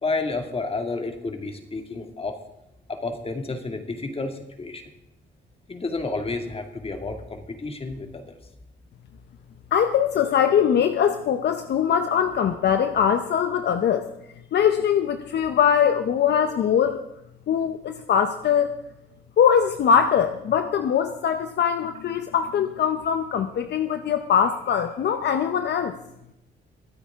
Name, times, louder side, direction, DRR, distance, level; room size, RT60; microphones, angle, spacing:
voice 1, 0.0-2.4 2.9-4.8 5.7-8.4, left 3 dB, 30° left, 5 dB, 2.2 m, -30 dB
voice 2, 9.7-14.1 14.5-17.0 17.5-18.8 19.4-25.9, left 8 dB, 60° left, 8 dB, 0.8 m, -22 dB
23.5 x 8.5 x 3.7 m, 0.88 s
cardioid pair, 90°, 20 cm